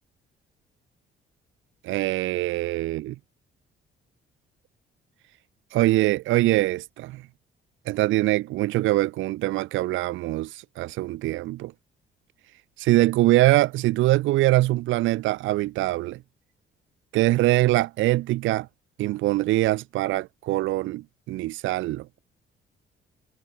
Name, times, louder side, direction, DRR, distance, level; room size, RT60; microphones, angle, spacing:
voice 1, 1.8-3.2 5.7-7.2 7.9-11.7 12.8-16.2 17.1-18.7 19.0-22.1, right 17 dB, 80° right, 0.4 m, -23 dB
cardioid pair, 90°, 20 cm